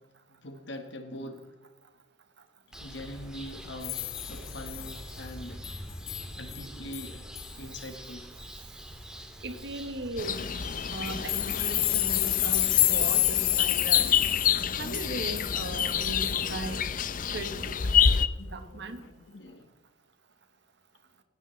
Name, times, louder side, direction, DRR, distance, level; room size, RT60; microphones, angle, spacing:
voice 1, 0.4-1.5 2.7-5.6 6.3-7.3 7.6-8.3 14.7-16.0 16.3-16.5 18.4-19.7, left 1 dB, 60° left, 6 dB, 1.3 m, -43 dB
sound 1, 2.7-12.9, equal, 5° right, 1.7 m, -44 dB
sound 2, 3.8-5.0 5.6-5.8 6.1-6.2 6.5-6.6 6.9-7.1 7.4-7.5 11.1-16.5, left 18 dB, 90° left, 0.7 m, -29 dB
voice 2, 9.4-10.5 10.9-14.2 14.8-16.8 17.3-19.0, right 2 dB, 55° right, 8 dB, 1.1 m, -38 dB
sound 3, 10.2-18.3, left 7 dB, 40° left, 0.6 m, -28 dB
17.0 x 17.0 x 3.2 m, 1.1 s
head